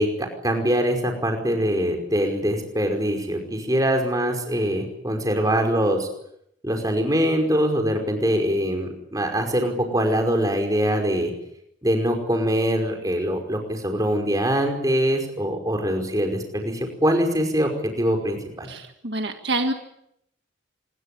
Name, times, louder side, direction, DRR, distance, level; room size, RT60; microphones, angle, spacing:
voice 1, 0.0-6.1 6.6-11.3 11.8-18.7, equal, 20° right, 4 dB, 5.2 m, -23 dB
voice 2, 18.7-19.7, right 2 dB, 60° right, 5 dB, 1.8 m, -27 dB
26.5 x 22.0 x 8.5 m, 0.76 s
head